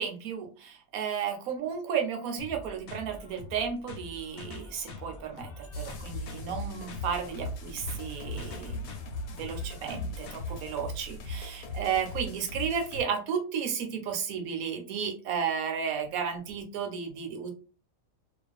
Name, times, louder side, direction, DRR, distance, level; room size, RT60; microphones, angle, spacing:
voice 1, 0.0-8.9 9.3-17.5, right 7 dB, 80° right, 4 dB, 1.0 m, -33 dB
sound 1, 2.4-10.4, left 3 dB, 65° left, 0.5 m, -45 dB
sound 2, 5.7-13.0, left 1 dB, 80° left, 1.1 m, -38 dB
2.4 x 2.4 x 2.3 m, 0.36 s
omnidirectional pair, 1.5 m